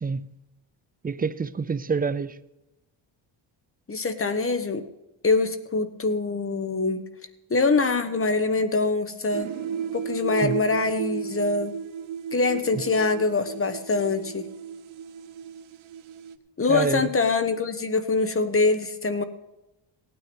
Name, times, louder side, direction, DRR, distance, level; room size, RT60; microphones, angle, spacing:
voice 1, 0.0-0.3 1.0-2.3 10.4-10.6 16.7-17.1, right 5 dB, 20° right, 0.5 m, -27 dB
voice 2, 3.9-4.8 5.2-7.0 7.5-9.5 9.9-11.7 12.3-14.5 16.6-19.2, left 3 dB, 25° left, 1.2 m, -24 dB
sound 1, 9.3-16.3, right 7 dB, 80° right, 1.1 m, -34 dB
17.0 x 9.5 x 5.3 m
cardioid pair, 115°, 48 cm